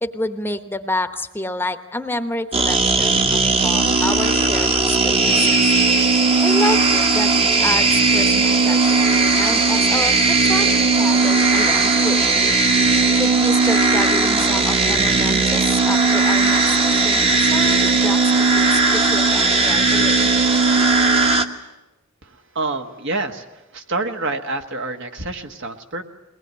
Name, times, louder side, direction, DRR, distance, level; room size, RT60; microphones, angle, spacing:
voice 1, 0.0-5.7 6.4-7.3 7.6-12.2 13.1-20.3, left 1 dB, 10° left, 8 dB, 1.0 m, -29 dB
sound 1, 2.5-21.4, right 3 dB, 30° right, 1.2 m, -17 dB
voice 2, 22.2-26.0, right 2 dB, 60° right, 5 dB, 1.5 m, -27 dB
21.5 x 19.5 x 9.5 m, 1.0 s
head